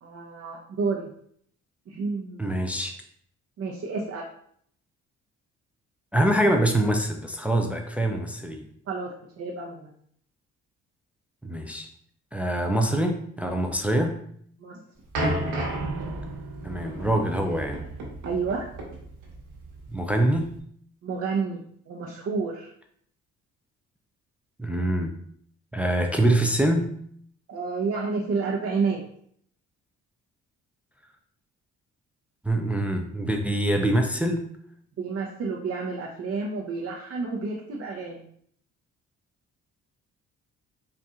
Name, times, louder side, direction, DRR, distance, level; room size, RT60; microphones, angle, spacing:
voice 1, 0.0-1.1 1.9-2.5 3.6-4.3 8.9-9.1 9.4-9.9 14.6-14.8 18.2-18.7 21.0-21.6 21.9-22.7 27.5-29.0 35.0-38.2, right 4 dB, 55° right, -2 dB, 0.8 m, -30 dB
voice 2, 2.4-3.0 6.1-8.7 11.4-11.9 12.3-14.2 16.6-17.8 19.9-20.5 24.6-25.1 25.7-26.9 32.4-34.4, right 1 dB, 5° right, 4 dB, 0.4 m, -24 dB
sound 1, 15.1-20.6, right 1 dB, 85° right, 1.2 m, -32 dB
4.1 x 2.5 x 3.6 m, 0.64 s
cardioid pair, 90°, 30 cm